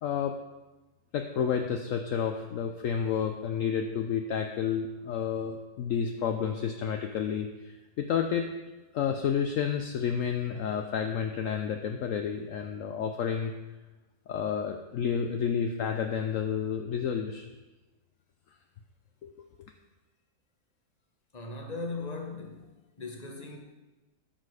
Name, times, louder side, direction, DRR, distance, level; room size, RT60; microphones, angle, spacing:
voice 1, 0.0-0.3 1.1-8.5 8.9-13.5 14.3-17.4 19.2-19.3, left 7 dB, 65° left, 0.9 m, -30 dB
voice 2, 21.3-22.7 23.0-23.6, left 3 dB, 25° left, 1.3 m, -38 dB
13.5 x 6.5 x 4.8 m
omnidirectional pair, 1.7 m